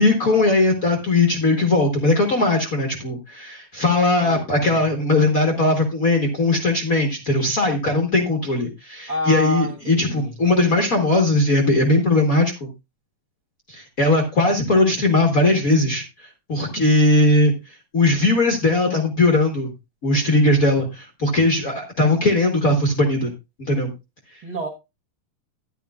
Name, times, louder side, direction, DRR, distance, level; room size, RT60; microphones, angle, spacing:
voice 1, 0.0-12.7 13.7-19.7 20.0-23.3 23.6-23.9, left 2 dB, 65° left, 0.8 m, -19 dB
voice 2, 4.2-4.8 9.1-10.3 24.4-24.7, right 1 dB, 50° right, 1.2 m, -28 dB
12.0 x 10.5 x 2.4 m
omnidirectional pair, 3.7 m